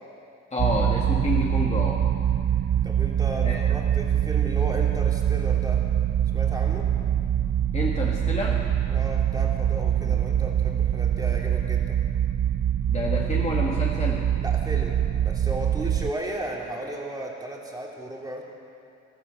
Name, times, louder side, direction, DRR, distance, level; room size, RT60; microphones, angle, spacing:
voice 1, 0.5-2.0 3.4-3.6 7.7-8.7 10.0-10.2 12.9-14.2, left 2 dB, 20° left, -3 dB, 1.9 m, -29 dB
sound 1, 0.6-16.1, right 10 dB, 40° right, 0.5 m, -24 dB
voice 2, 2.8-5.8 6.3-6.9 8.9-12.0 14.4-18.4, right 1 dB, 15° right, -2 dB, 2.8 m, -35 dB
13.5 x 13.0 x 8.2 m, 2.6 s
cardioid pair, 90°, 30 cm